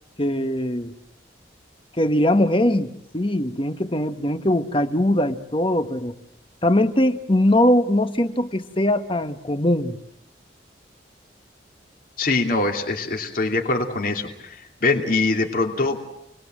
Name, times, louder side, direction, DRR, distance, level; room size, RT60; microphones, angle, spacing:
voice 1, 0.2-0.9 2.0-6.1 6.6-10.0, left 1 dB, 30° left, 9 dB, 1.5 m, -21 dB
voice 2, 12.2-16.0, left 3 dB, 50° left, 2 dB, 2.8 m, -23 dB
29.0 x 21.0 x 7.7 m, 0.79 s
head